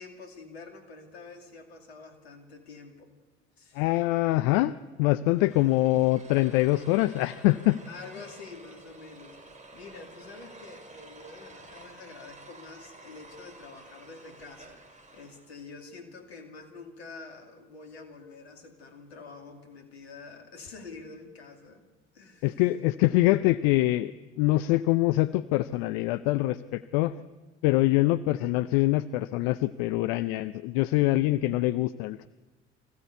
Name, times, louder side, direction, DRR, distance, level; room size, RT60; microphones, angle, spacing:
voice 1, 0.0-3.1 3.6-3.9 7.9-14.8 15.1-21.8 22.1-22.6, left 4 dB, 90° left, 5 dB, 2.6 m, -47 dB
voice 2, 3.7-4.7 5.0-7.8 22.4-24.1 24.4-27.1 27.6-32.3, left 17 dB, 75° left, 15 dB, 0.6 m, -24 dB
sound 1, 5.3-15.6, right 2 dB, 25° right, 4.3 m, -51 dB
24.5 x 16.0 x 8.3 m, 1.3 s
hypercardioid pair, 55°, 31 cm